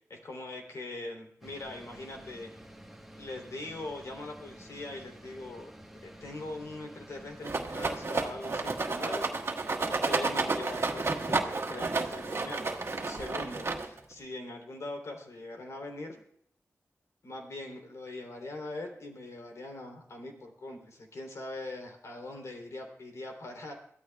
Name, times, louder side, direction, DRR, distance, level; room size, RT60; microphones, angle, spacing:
voice 1, 0.1-2.5 3.2-5.7 6.0-9.3 9.8-16.2 17.2-23.7, left 2 dB, 80° left, 2 dB, 3.3 m, -42 dB
sound 1, 1.4-13.2, right 1 dB, 5° right, 1.4 m, -50 dB
Rattle, 7.4-14.1, right 3 dB, 60° right, 1.6 m, -31 dB
23.0 x 15.0 x 2.4 m, 0.67 s
wide cardioid pair, 105°, 5 cm